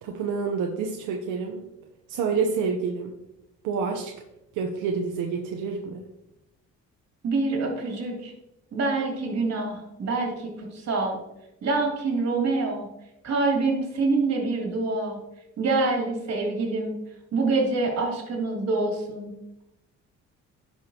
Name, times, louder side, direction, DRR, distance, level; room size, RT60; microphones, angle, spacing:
voice 1, 0.0-1.6 2.1-3.1 3.6-4.1 4.5-6.0, right 5 dB, 90° right, 2 dB, 0.9 m, -28 dB
voice 2, 7.2-8.3 8.7-11.2 11.6-12.9 13.2-15.2 15.6-17.0 17.3-19.3, right 3 dB, 60° right, 0 dB, 3.0 m, -26 dB
10.5 x 6.1 x 2.9 m, 0.89 s
cardioid pair, 90°, 30 cm